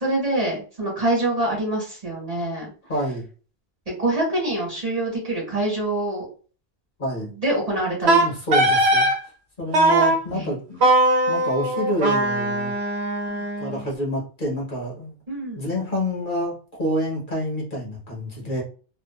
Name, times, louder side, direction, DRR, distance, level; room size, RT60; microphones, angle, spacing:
voice 1, 0.0-2.7 3.9-6.3 7.4-8.1 10.3-10.6 15.3-15.6, right 1 dB, 40° right, -3 dB, 1.3 m, -25 dB
voice 2, 2.9-3.3 7.0-7.3 8.0-9.1 9.6-10.8 11.3-12.7 13.4-15.2 15.6-18.6, equal, 55° left, -2 dB, 1.1 m, -27 dB
Wind instrument woodwind instrument, 8.1-9.2 9.7-10.2 10.8-13.8, right 1 dB, 85° right, 1.0 m, -20 dB
2.7 x 2.3 x 2.3 m, 0.37 s
omnidirectional pair, 1.0 m